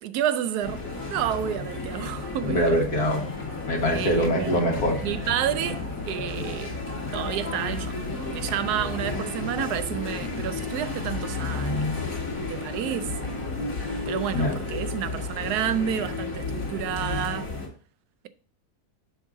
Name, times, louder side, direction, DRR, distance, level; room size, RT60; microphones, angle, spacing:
voice 1, 0.0-2.8 3.9-4.6 5.0-8.0 8.3-11.9 12.5-13.3 14.1-17.5, right 10 dB, 85° right, 1.2 m, -30 dB
sound 1, 0.6-17.7, left 3 dB, 60° left, 2.3 m, -32 dB
voice 2, 2.4-3.3 3.7-5.0 14.3-14.6, equal, 75° left, 2.1 m, -24 dB
7.1 x 5.4 x 3.6 m
omnidirectional pair, 1.6 m